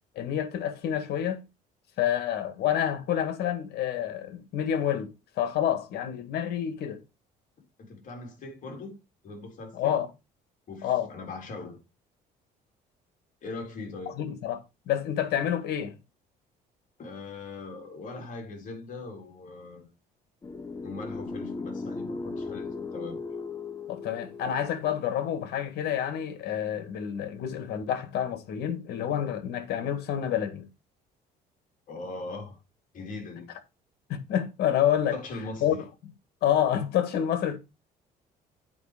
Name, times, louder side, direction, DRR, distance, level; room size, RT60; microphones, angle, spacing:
voice 1, 0.2-1.4 2.0-7.0 9.7-10.1 10.8-11.1 14.2-16.0 23.9-30.7 34.1-35.2 35.6-35.8 36.0-36.1 36.4-37.6, left 10 dB, 75° left, 1.8 m, -28 dB
voice 2, 7.8-9.9 10.7-11.8 13.4-14.2 17.0-19.9 20.8-23.2 31.9-32.6 32.9-33.5 35.1-35.8, left 3 dB, 50° left, 3.8 m, -40 dB
sound 1, 20.4-25.5, left 3 dB, 20° left, 1.1 m, -37 dB
8.6 x 5.2 x 5.0 m
cardioid pair, 110°, 17 cm